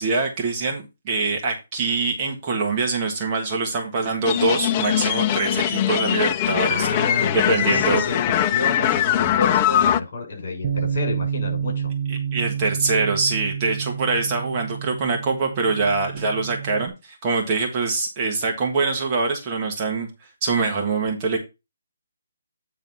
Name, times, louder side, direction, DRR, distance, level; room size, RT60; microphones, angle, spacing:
voice 1, 0.0-6.9 7.3-8.0 12.1-20.1 20.4-21.4, right 3 dB, 25° right, 1 dB, 1.4 m, -24 dB
sound 1, 4.3-10.0, left 10 dB, 20° left, 0.4 m, -21 dB
voice 2, 6.7-11.9, left 3 dB, 45° left, 1 dB, 6.0 m, -30 dB
Bass guitar, 10.6-16.9, right 8 dB, 40° right, 0.7 m, -29 dB
9.2 x 4.0 x 5.4 m, 0.26 s
hypercardioid pair, 165°, 0 cm